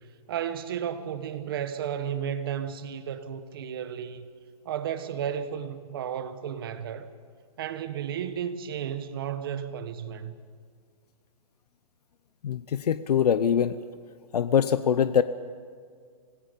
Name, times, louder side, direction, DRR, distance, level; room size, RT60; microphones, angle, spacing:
voice 1, 0.3-4.3 4.6-7.1 7.6-10.3, right 8 dB, 35° right, 1.2 m, -33 dB
voice 2, 12.4-13.7 14.3-15.2, left 8 dB, 80° left, 0.8 m, -23 dB
26.0 x 19.5 x 5.2 m
hypercardioid pair, 175°, 20 cm